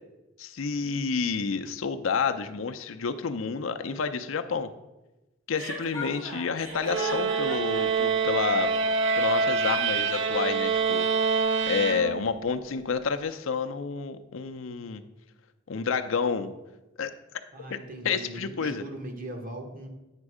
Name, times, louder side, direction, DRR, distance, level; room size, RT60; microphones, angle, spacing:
voice 1, 0.4-4.7 5.5-8.7 9.2-11.1 11.7-15.0 15.7-16.5 17.0-17.4 17.7-17.8 18.0-18.8, left 5 dB, 75° left, 7 dB, 0.5 m, -29 dB
Chuckle chortle, 5.5-7.8, equal, 85° right, 2.3 m, -36 dB
sound 1, 6.8-12.5, right 5 dB, 65° right, 0.6 m, -26 dB
voice 2, 17.5-19.9, right 1 dB, 45° right, 4 dB, 1.2 m, -39 dB
8.9 x 5.3 x 4.8 m, 1.0 s
head